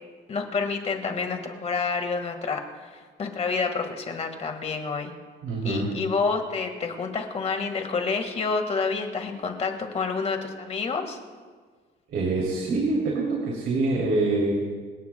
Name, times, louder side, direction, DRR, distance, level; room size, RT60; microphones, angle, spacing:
voice 1, 0.3-2.9 3.2-5.1 5.6-11.2, left 4 dB, 35° left, 5 dB, 1.8 m, -28 dB
voice 2, 5.4-5.9 12.1-14.5, right 3 dB, 70° right, -2 dB, 3.0 m, -25 dB
26.5 x 18.0 x 2.3 m, 1.5 s
cardioid pair, 160°, 19 cm